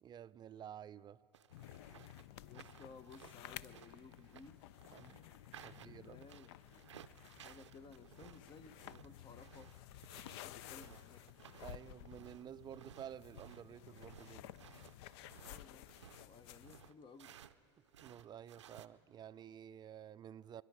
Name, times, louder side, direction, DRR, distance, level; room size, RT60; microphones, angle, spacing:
voice 1, 0.0-1.2 4.9-5.3 5.6-6.2 11.6-14.5 18.0-20.6, right 9 dB, 30° right, 0.4 m, -52 dB
sound 1, 1.3-17.6 17.9-18.9, right 10 dB, 90° right, 0.5 m, -59 dB
sound 2, 1.5-16.9, left 13 dB, 70° left, 0.4 m, -54 dB
voice 2, 2.4-4.6 5.6-6.9 7.3-9.8 10.1-11.4 15.4-17.4, left 4 dB, 35° left, 0.8 m, -58 dB
28.0 x 10.5 x 4.8 m
hypercardioid pair, 80°, 15 cm